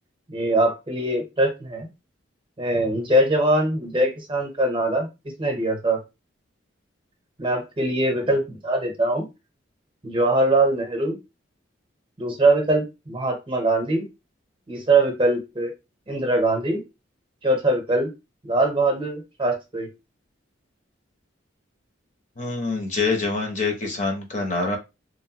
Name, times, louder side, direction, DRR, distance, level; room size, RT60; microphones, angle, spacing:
voice 1, 0.3-1.9 2.6-5.1 5.4-6.0 7.4-9.3 10.0-11.2 12.2-14.1 14.7-15.7 16.1-16.8 17.4-18.1 18.4-19.9, right 2 dB, 25° right, 3 dB, 0.7 m, -22 dB
voice 2, 22.4-24.8, left 3 dB, 40° left, 2 dB, 0.6 m, -25 dB
3.0 x 2.1 x 2.8 m, 0.25 s
head